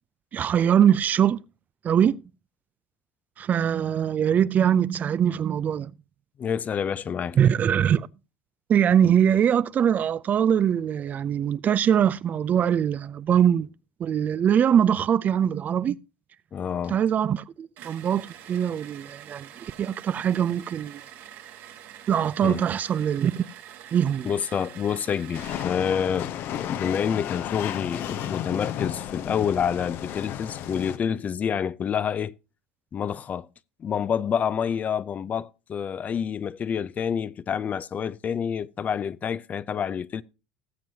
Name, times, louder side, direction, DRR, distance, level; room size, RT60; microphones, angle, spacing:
voice 1, 0.3-1.4 1.8-2.2 3.4-5.9 7.4-8.1 8.7-13.7 14.0-16.0 16.9-19.5 19.8-21.0 22.1-23.4 23.9-24.3, right 9 dB, 40° right, 0.5 m, -22 dB
voice 2, 6.4-7.4 16.5-17.0 22.4-22.6 24.2-32.3 32.9-33.5 33.8-40.2, left 7 dB, 35° left, 0.6 m, -28 dB
sound 1, 17.8-25.8, right 10 dB, 60° right, 1.7 m, -46 dB
sound 2, 25.3-31.0, left 11 dB, 55° left, 0.9 m, -33 dB
19.0 x 7.6 x 2.8 m
hypercardioid pair, 85°, 4 cm